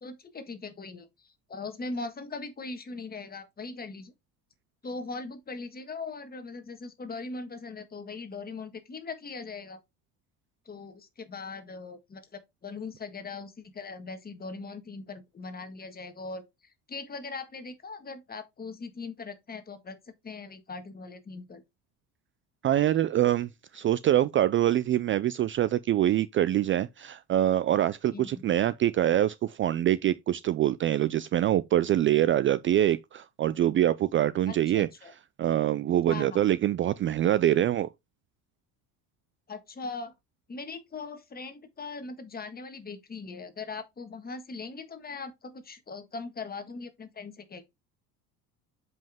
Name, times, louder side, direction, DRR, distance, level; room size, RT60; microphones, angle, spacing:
voice 1, 0.0-4.1 4.8-9.8 10.6-16.4 16.9-20.0 20.2-21.6 28.1-28.4 34.5-35.1 36.1-36.4 39.5-40.1 40.5-47.7, left 4 dB, 25° left, 1.6 m, -40 dB
voice 2, 22.6-34.9 35.4-37.9, right 12 dB, 35° right, 0.4 m, -25 dB
7.4 x 5.4 x 3.5 m
supercardioid pair, 105°, 36 cm